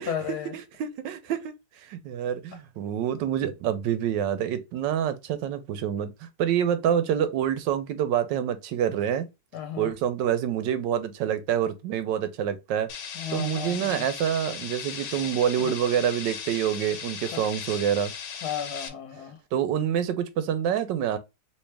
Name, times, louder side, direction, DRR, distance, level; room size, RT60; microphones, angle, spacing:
voice 1, 0.0-0.6 9.5-9.9 13.1-14.0 15.2-15.7 17.3-17.4 18.4-19.4, left 9 dB, 65° left, 1.2 m, -34 dB
voice 2, 0.5-1.5 1.8-9.3 9.8-12.9 13.3-18.1 19.5-21.2, right 9 dB, 85° right, 1.3 m, -27 dB
sound 1, 12.9-18.9, left 7 dB, 85° left, 1.3 m, -37 dB
3.1 x 3.1 x 3.3 m
omnidirectional pair, 1.9 m